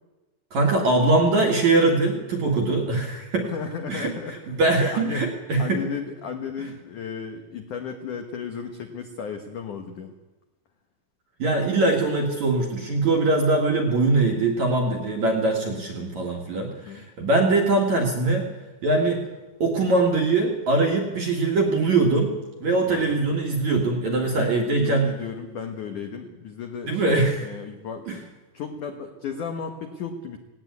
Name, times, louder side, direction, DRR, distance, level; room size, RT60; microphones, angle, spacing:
voice 1, 0.5-3.5 3.9-4.1 4.5-5.8 11.4-18.5 18.8-19.2 19.6-22.3 22.6-25.1 26.9-27.5, right 2 dB, 50° right, 2 dB, 2.3 m, -22 dB
voice 2, 3.4-5.3 5.6-10.1 16.8-17.1 22.9-23.2 24.2-24.5 24.8-30.4, left 6 dB, 75° left, 5 dB, 1.8 m, -34 dB
18.0 x 17.5 x 9.5 m, 1.1 s
omnidirectional pair, 5.8 m